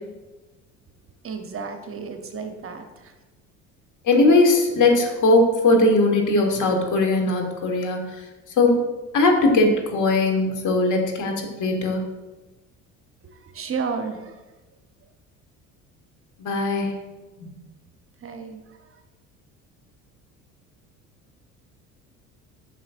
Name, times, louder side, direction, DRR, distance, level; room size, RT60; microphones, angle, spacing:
voice 1, 1.2-3.1 13.4-14.3 18.2-18.6, right 5 dB, 35° right, 6 dB, 0.7 m, -32 dB
voice 2, 4.1-8.0 8.6-8.7 9.1-11.3 11.6-12.0 16.4-16.9 17.4-17.5, left 2 dB, 50° left, 3 dB, 1.4 m, -19 dB
7.4 x 5.7 x 2.4 m, 1.2 s
hypercardioid pair, 65°, 40 cm